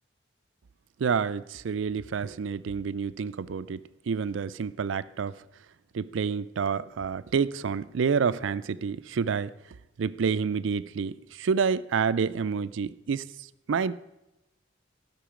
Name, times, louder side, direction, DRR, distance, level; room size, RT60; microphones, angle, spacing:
voice 1, 1.0-5.3 5.9-9.5 10.0-13.2 13.7-14.0, right 6 dB, 90° right, 16 dB, 0.4 m, -28 dB
16.0 x 6.0 x 5.0 m, 0.92 s
head